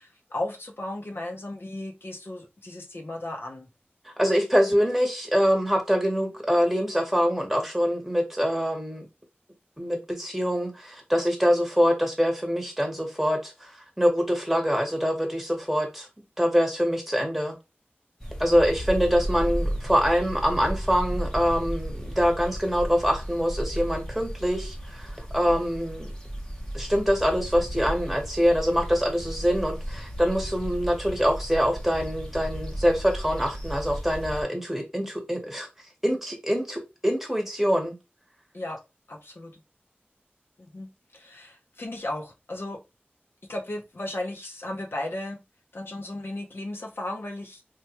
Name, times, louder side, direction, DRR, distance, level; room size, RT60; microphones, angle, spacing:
voice 1, 0.0-3.7 38.5-38.8 39.1-39.6 40.6-42.8 43.5-45.4 45.7-47.6, left 1 dB, 70° left, 0.6 m, -35 dB
voice 2, 4.1-9.1 9.8-16.1 16.4-17.6 18.4-26.1 26.7-35.7 36.0-38.0, equal, 5° right, 0.9 m, -24 dB
sound 1, 18.2-34.4, equal, 15° left, 0.8 m, -34 dB
3.3 x 2.2 x 2.8 m
wide cardioid pair, 50°, 4 cm